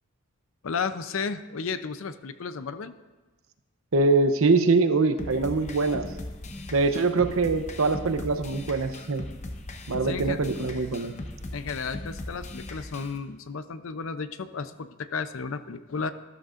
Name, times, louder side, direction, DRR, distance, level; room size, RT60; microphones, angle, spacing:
voice 1, 0.6-3.0 10.0-10.4 11.5-16.1, left 5 dB, 75° left, 12 dB, 0.6 m, -33 dB
voice 2, 3.9-6.0 6.7-9.3 9.9-11.1, right 3 dB, 85° right, 9 dB, 0.8 m, -23 dB
sound 1, 5.2-13.2, left 1 dB, 35° left, 0.9 m, -38 dB
13.0 x 12.0 x 2.5 m, 1.2 s
head